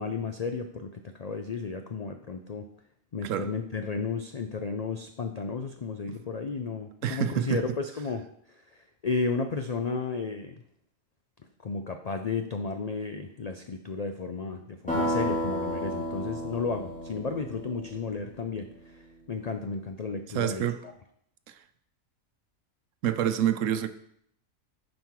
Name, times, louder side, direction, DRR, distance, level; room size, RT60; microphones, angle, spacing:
voice 1, 0.0-2.7 3.1-10.6 11.6-20.6, left 4 dB, 65° left, 0.4 m, -33 dB
voice 2, 7.0-7.6 20.3-20.8 21.5-21.6 23.0-23.9, right 9 dB, 75° right, 1.0 m, -27 dB
sound 1, 14.9-18.7, equal, 5° left, 2.6 m, -32 dB
9.3 x 5.2 x 4.7 m
omnidirectional pair, 1.4 m